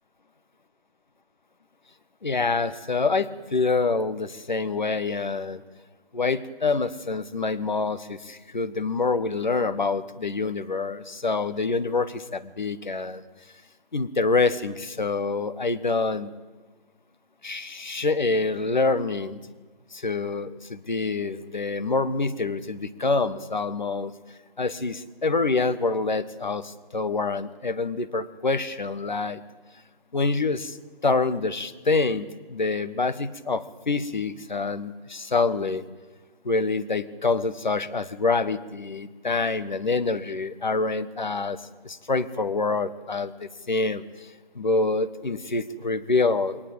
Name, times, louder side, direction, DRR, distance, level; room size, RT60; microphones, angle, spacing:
voice 1, 2.2-5.6 6.1-13.3 13.9-16.3 17.4-19.4 19.9-24.1 24.6-29.4 30.1-30.8 31.0-35.8 36.4-41.6 41.8-44.0 44.5-46.6, left 3 dB, 50° left, 12 dB, 1.5 m, -26 dB
21.5 x 19.0 x 8.8 m, 1.3 s
figure-of-eight pair, 160°, 30 cm